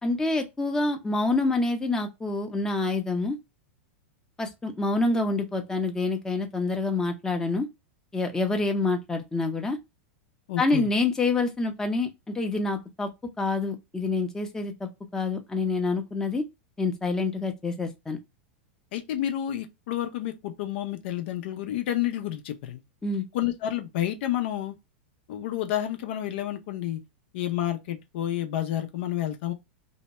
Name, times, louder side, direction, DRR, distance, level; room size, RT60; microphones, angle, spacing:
voice 1, 0.0-3.4 4.4-7.7 8.1-9.8 10.6-13.1 13.4-16.5 16.8-18.2 23.0-23.2, left 3 dB, 10° left, 0.6 m, -27 dB
voice 2, 10.5-10.9 18.9-22.8 23.3-24.7 25.3-27.0 27.3-29.5, left 12 dB, 65° left, 0.6 m, -30 dB
2.7 x 2.2 x 4.1 m
hypercardioid pair, 115°, 6 cm